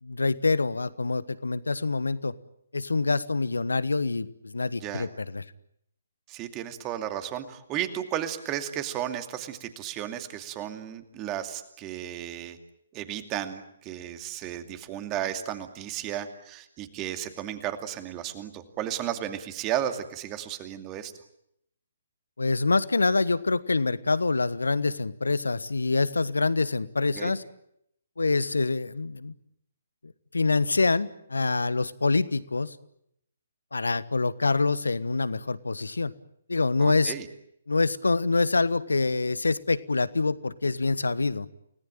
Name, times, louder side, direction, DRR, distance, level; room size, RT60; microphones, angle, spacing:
voice 1, 0.0-2.3 2.7-5.4 22.4-27.4 28.2-29.3 30.3-32.8 33.7-36.1 36.5-37.1 37.7-41.5, left 3 dB, 75° left, 16 dB, 1.3 m, -26 dB
voice 2, 6.3-12.6 12.9-21.1 27.1-27.3 36.8-37.3, right 11 dB, 20° right, 8 dB, 2.5 m, -34 dB
30.0 x 19.0 x 9.1 m, 0.75 s
figure-of-eight pair, 130°, 0 cm